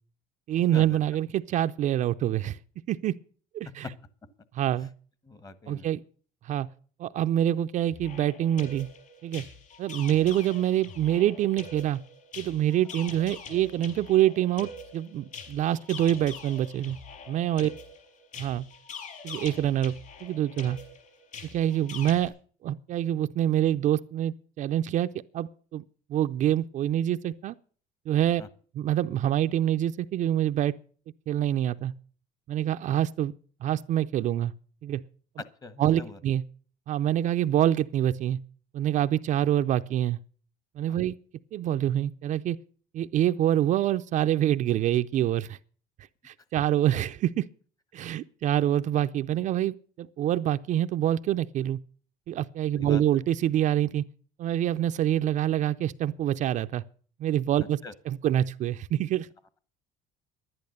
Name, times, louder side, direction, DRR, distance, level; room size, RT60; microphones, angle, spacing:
voice 1, 0.5-2.6 2.9-3.1 3.5-3.9 4.6-4.9 5.7-6.0 6.4-6.7 7.0-8.9 9.2-9.4 9.8-12.0 12.4-17.0 17.3-17.7 18.4-18.7 19.2-19.9 20.2-20.8 21.5-22.3 22.6-25.1 25.3-25.8 26.1-27.6 28.1-28.4 28.8-30.7 31.3-31.9 32.5-33.3 33.6-34.5 34.8-35.0 35.8-36.4 36.9-38.4 38.7-40.2 40.8-41.1 41.5-42.6 42.9-45.6 46.2-47.5 47.9-51.8 52.3-54.0 54.4-56.8 57.2-57.8 58.1-59.3, right 11 dB, 45° right, 0.5 m, -26 dB
voice 2, 5.2-5.9 12.8-12.9 17.6-17.7 28.4-28.5 35.4-36.2 40.9-41.0 52.8-53.0 57.8-57.9, left 4 dB, 20° left, 1.1 m, -42 dB
sound 1, 7.9-22.3, left 5 dB, 45° left, 5.7 m, -44 dB
11.0 x 10.5 x 6.6 m
cardioid pair, 135°, 17 cm